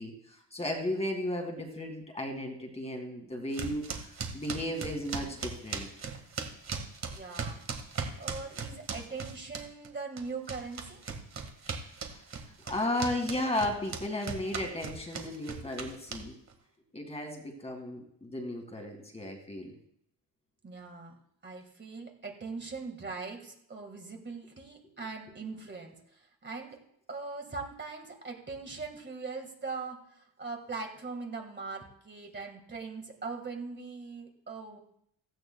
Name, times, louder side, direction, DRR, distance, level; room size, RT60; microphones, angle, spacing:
voice 1, 0.0-5.9 11.7-11.8 12.1-12.2 12.6-16.3 16.9-19.7, left 1 dB, 15° left, 3 dB, 2.1 m, -35 dB
sound 1, 3.5-9.9 10.2-16.5, right 5 dB, 45° right, 1.8 m, -38 dB
voice 2, 7.1-7.6 8.2-11.0 20.6-21.1 21.4-26.8 27.1-34.8, right 4 dB, 30° right, 3 dB, 1.9 m, -41 dB
16.5 x 15.5 x 2.3 m, 0.73 s
cardioid pair, 145°, 38 cm